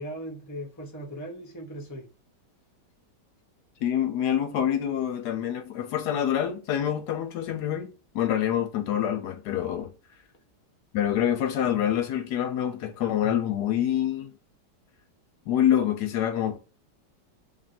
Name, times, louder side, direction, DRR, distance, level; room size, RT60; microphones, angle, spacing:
voice 1, 0.0-2.0, equal, 15° left, 0.6 m, -38 dB
voice 2, 3.8-9.9 10.9-14.3 15.5-16.6, left 10 dB, 75° left, 1.1 m, -26 dB
3.3 x 2.5 x 4.1 m
omnidirectional pair, 1.9 m